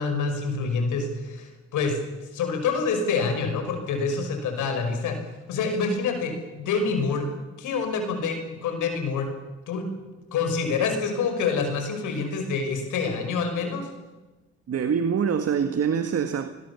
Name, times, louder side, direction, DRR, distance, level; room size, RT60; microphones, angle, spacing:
voice 1, 0.0-2.0 2.3-5.2 5.5-7.3 7.6-9.3 9.7-9.9 10.3-13.9, left 4 dB, 85° left, 5.4 m, -27 dB
voice 2, 14.7-16.5, right 7 dB, 55° right, 1.6 m, -24 dB
27.5 x 21.0 x 7.0 m
cardioid pair, 90°, 30 cm